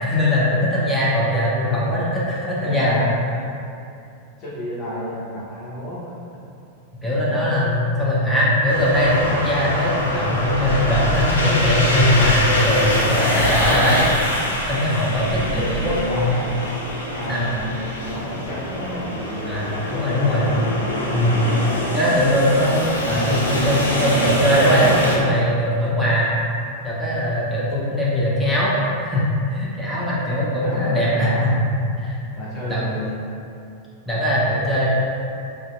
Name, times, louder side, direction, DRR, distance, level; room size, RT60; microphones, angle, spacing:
voice 1, 0.0-3.0 7.0-14.0 14.7-16.3 17.3-17.5 19.4-20.5 21.1-21.4 21.9-26.3 26.8-31.5 32.0-32.2 32.7-32.8 34.1-34.9, left 1 dB, ahead, -9 dB, 0.6 m, -20 dB
voice 2, 1.7-2.1 2.6-3.4 4.4-6.0 7.3-7.4 15.3-16.5 17.0-20.7 21.7-21.9 30.6-31.5 32.4-33.1, equal, 35° left, -8 dB, 0.8 m, -31 dB
sound 1, 8.7-25.2, left 1 dB, 75° left, 0.4 m, -24 dB
2.5 x 2.1 x 2.5 m, 2.6 s
figure-of-eight pair, 90°, 0 cm